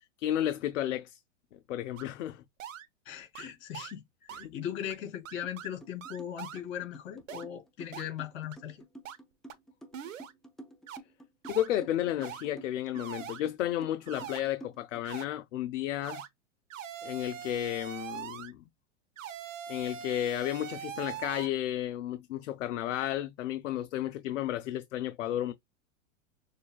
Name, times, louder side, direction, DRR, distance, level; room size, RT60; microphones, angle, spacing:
voice 1, 0.2-1.2 1.7-2.4 4.3-4.5 11.5-16.2 17.0-18.6 19.7-25.5, left 12 dB, 75° left, 0.7 m, -32 dB
sound 1, 2.0-2.1 2.6-2.8 3.3-3.5 3.7-3.9 4.3-4.5 4.9-5.0 5.2-5.7 6.0-6.6 7.3-7.4 7.9-8.0 8.5-8.6 9.0-9.2 9.5-9.6 9.9-10.3 10.9-11.0 11.4-11.7 12.2-12.4 12.9-13.4 14.1-14.4 15.0-15.2 16.0-16.3 16.7-18.5 19.2-21.5, right 8 dB, 80° right, 1.1 m, -42 dB
voice 2, 3.0-8.8, left 10 dB, 55° left, 3.3 m, -39 dB
sound 2, 5.4-5.5 5.8-15.0, right 2 dB, ahead, 0.3 m, -50 dB
6.6 x 2.6 x 2.2 m
hypercardioid pair, 130°, 38 cm